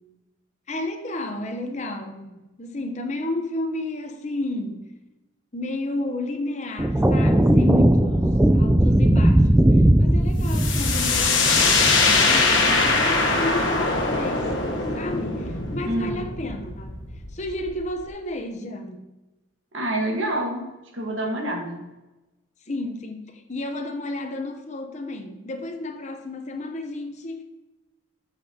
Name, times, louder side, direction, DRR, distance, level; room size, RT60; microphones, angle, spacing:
voice 1, 0.7-4.9 5.5-17.0 17.3-19.1 22.7-27.4, left 1 dB, 35° left, 5 dB, 0.8 m, -32 dB
sound 1, 6.8-12.4, right 1 dB, 10° right, 0.3 m, -18 dB
Sweep Downwards, 10.5-18.1, left 3 dB, 75° left, 1.1 m, -22 dB
voice 2, 15.8-16.3 19.7-21.9, right 1 dB, 75° right, 2 dB, 1.5 m, -28 dB
8.4 x 7.5 x 2.8 m, 1.1 s
head